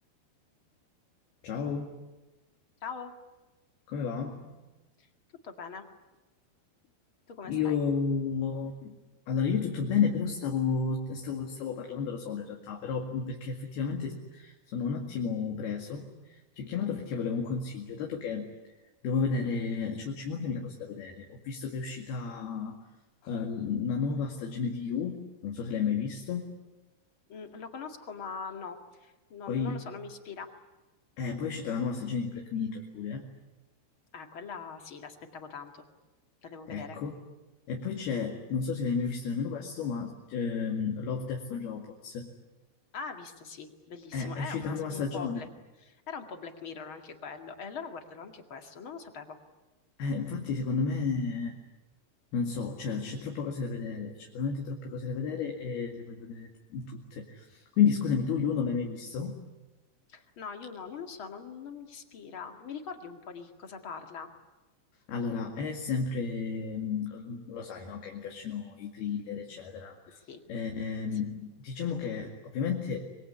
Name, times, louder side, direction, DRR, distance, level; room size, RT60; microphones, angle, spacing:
voice 1, 1.4-1.9 3.9-4.6 7.4-9.0 9.3-18.5 19.0-22.8 23.2-26.5 29.5-29.8 31.2-33.2 36.7-37.1 37.7-42.3 44.1-45.5 50.0-51.6 52.3-59.4 65.1-70.2 70.5-73.0, left 5 dB, 70° left, 1 dB, 4.0 m, -32 dB
voice 2, 2.8-3.1 5.0-5.1 5.4-5.8 7.3-7.8 27.3-30.5 34.1-35.8 36.4-37.0 42.9-45.5 45.8-49.4 60.1-64.3 70.3-70.4, left 5 dB, 40° left, 5 dB, 2.1 m, -42 dB
26.0 x 22.5 x 9.8 m, 1.1 s
omnidirectional pair, 4.8 m